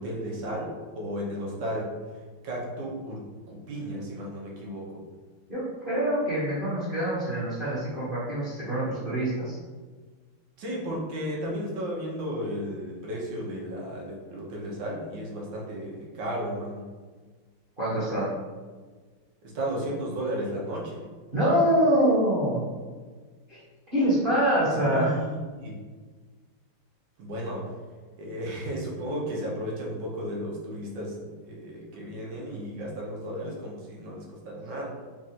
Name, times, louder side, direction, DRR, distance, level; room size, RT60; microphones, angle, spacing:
voice 1, 0.0-1.9 2.4-5.0 10.6-16.9 19.4-20.9 24.8-25.8 27.2-27.7 28.2-34.9, equal, 75° right, -2 dB, 1.6 m, -34 dB
voice 2, 5.5-9.6 17.8-18.3 21.3-22.6 23.5-23.6 23.9-25.1, right 1 dB, 35° right, -9 dB, 1.1 m, -25 dB
4.0 x 2.4 x 4.1 m, 1.4 s
omnidirectional pair, 2.1 m